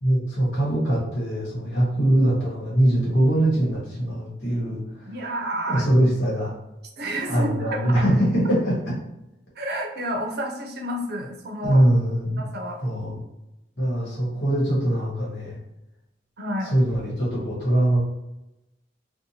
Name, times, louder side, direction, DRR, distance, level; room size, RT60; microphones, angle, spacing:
voice 1, 0.0-5.1 5.7-6.5 7.3-8.9 11.6-12.5 12.8-13.2 13.8-15.6 16.6-18.0, right 1 dB, 75° left, -5 dB, 1.1 m, -22 dB
voice 2, 5.1-5.9 7.0-7.5 7.8-8.0 9.6-11.8 12.4-12.8 16.4-16.7, equal, 60° right, 2 dB, 0.5 m, -30 dB
2.7 x 2.1 x 2.7 m, 0.90 s
head